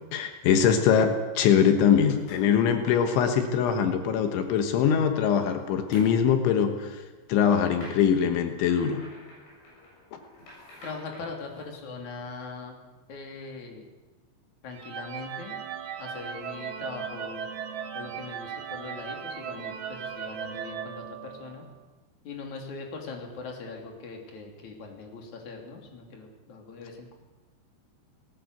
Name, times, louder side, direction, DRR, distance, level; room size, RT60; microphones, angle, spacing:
voice 1, 0.1-7.0 7.3-9.0, left 7 dB, 80° left, 6 dB, 3.7 m, -22 dB
sound 1, 2.0-2.5 5.9-6.1 7.8-11.8, left 1 dB, 65° left, 9.8 m, -49 dB
voice 2, 10.8-12.8 13.1-13.9 14.6-15.6 16.0-17.4 17.9-21.6 22.2-27.2, left 4 dB, 45° left, 1 dB, 4.2 m, -41 dB
sound 2, 14.7-21.7, right 7 dB, 80° right, 1.3 m, -37 dB
19.0 x 19.0 x 8.2 m, 1.2 s
omnidirectional pair, 5.3 m